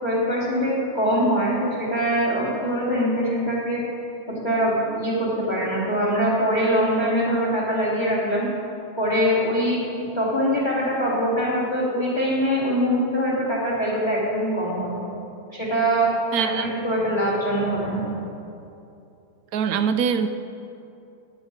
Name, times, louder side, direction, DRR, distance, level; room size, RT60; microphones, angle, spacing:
voice 1, 0.0-3.8 4.3-8.5 9.0-15.0 15.5-16.1 16.4-18.1, equal, 15° left, -6 dB, 3.3 m, -23 dB
voice 2, 16.3-16.7 19.5-20.3, right 7 dB, 75° right, 10 dB, 1.1 m, -23 dB
17.0 x 7.4 x 5.1 m, 2.7 s
omnidirectional pair, 1.6 m